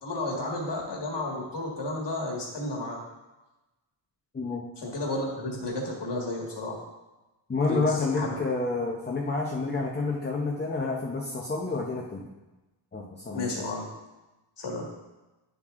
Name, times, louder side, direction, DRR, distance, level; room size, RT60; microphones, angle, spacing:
voice 1, 0.0-3.0 4.8-6.8 7.6-8.4 13.3-13.8 14.6-14.9, left 2 dB, 60° left, -2 dB, 1.7 m, -32 dB
voice 2, 7.5-12.3 12.9-13.5, left 3 dB, 20° left, -2 dB, 0.6 m, -29 dB
9.4 x 7.1 x 2.5 m, 1.1 s
wide cardioid pair, 160°, 48 cm